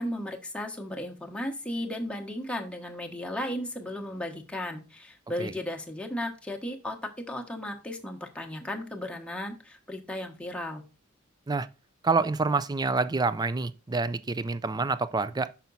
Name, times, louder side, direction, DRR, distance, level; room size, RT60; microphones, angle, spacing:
voice 1, 0.0-10.8, left 1 dB, 5° left, 1.1 m, -35 dB
voice 2, 12.0-15.5, right 4 dB, 20° right, 0.4 m, -27 dB
5.8 x 5.8 x 4.0 m
head